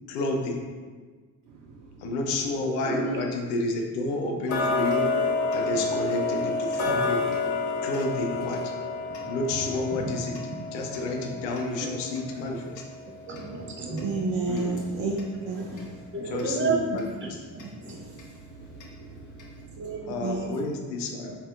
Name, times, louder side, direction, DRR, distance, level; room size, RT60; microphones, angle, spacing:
voice 1, 0.1-0.6 2.0-5.1 5.5-7.2 7.8-8.6 9.2-10.3 10.7-12.8 14.5-14.8 16.3-17.4 20.1-21.3, left 2 dB, 80° left, 2 dB, 0.6 m, -30 dB
voice 2, 2.8-3.2 5.7-6.0 6.9-7.0 7.8-7.9 9.5-9.6 10.0-10.1 10.9-11.1 11.8-11.9 13.3-14.2 15.6-16.8 17.2-18.1 19.8-20.2 21.3-21.4, right 4 dB, 25° right, 0 dB, 0.6 m, -33 dB
Tick-tock, 4.5-15.3 15.7-15.8 16.4-16.5 17.0-17.1 17.6-17.7 18.2-18.3 18.8-18.9 19.4-19.5, left 3 dB, 40° left, 0.7 m, -30 dB
voice 3, 13.8-15.1 15.4-15.9 17.9-18.2 18.5-19.8 20.2-20.4, right 4 dB, 65° right, -2 dB, 0.6 m, -32 dB
2.7 x 2.3 x 3.5 m, 1.5 s
hypercardioid pair, 55°, 48 cm